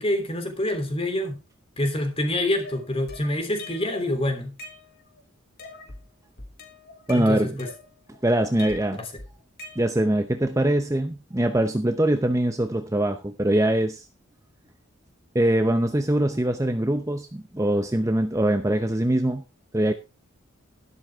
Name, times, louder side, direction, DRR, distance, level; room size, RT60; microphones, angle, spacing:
voice 1, 0.0-1.4 1.8-4.6 7.1-7.7 9.0-9.1, left 1 dB, 25° left, 3.3 m, -26 dB
sound 1, 2.6-4.0 4.4-5.2 5.6-6.1 6.4-8.2 8.6-10.2, left 2 dB, 50° left, 3.3 m, -43 dB
voice 2, 7.1-7.6 8.2-9.0 9.8-14.1 15.3-19.4 19.7-19.9, right 1 dB, 15° right, 0.7 m, -23 dB
12.5 x 11.5 x 3.6 m
head